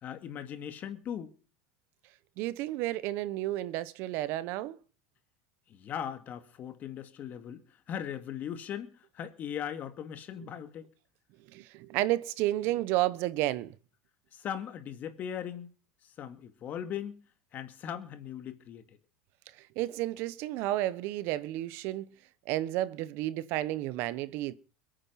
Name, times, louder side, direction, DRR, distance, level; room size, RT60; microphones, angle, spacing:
voice 1, 0.0-1.3 5.7-10.9 14.3-15.7 16.0-17.2 17.5-18.8, left 9 dB, 40° left, 2.4 m, -39 dB
voice 2, 2.4-4.8 11.5-13.8 19.6-22.1 22.5-24.5, right 15 dB, 60° right, 1.0 m, -31 dB
22.0 x 8.9 x 5.8 m
supercardioid pair, 120°, 4 cm